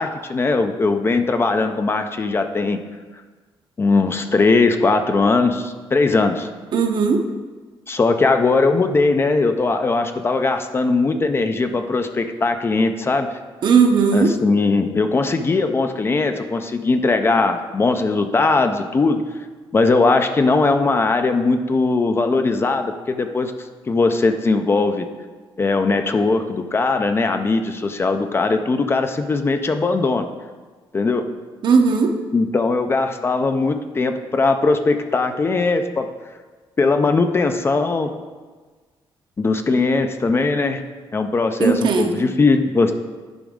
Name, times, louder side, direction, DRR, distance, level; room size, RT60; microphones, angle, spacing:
voice 1, 0.0-2.8 3.8-6.5 7.9-13.3 14.1-19.2 19.7-23.5 23.9-25.1 25.6-30.3 30.9-31.3 32.3-36.1 36.8-38.1 39.4-40.8 41.1-42.9, left 3 dB, 25° left, 7 dB, 0.4 m, -19 dB
voice 2, 6.7-7.2 13.6-14.3 31.6-32.1 41.6-42.1, right 5 dB, 55° right, 4 dB, 0.8 m, -16 dB
10.5 x 5.0 x 3.6 m, 1.4 s
wide cardioid pair, 160°, 10 cm